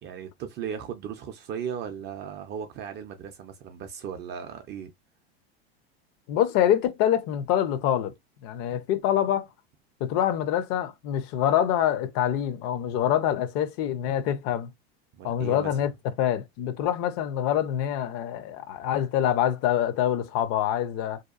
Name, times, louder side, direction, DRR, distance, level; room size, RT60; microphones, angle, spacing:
voice 1, 0.0-4.9 15.1-15.8, right 8 dB, 35° right, 0.4 m, -37 dB
voice 2, 6.3-8.1 8.4-9.5 10.0-14.7 15.2-15.9 16.2-21.2, left 10 dB, 50° left, 0.5 m, -25 dB
2.8 x 2.2 x 2.3 m
hypercardioid pair, 105°, 31 cm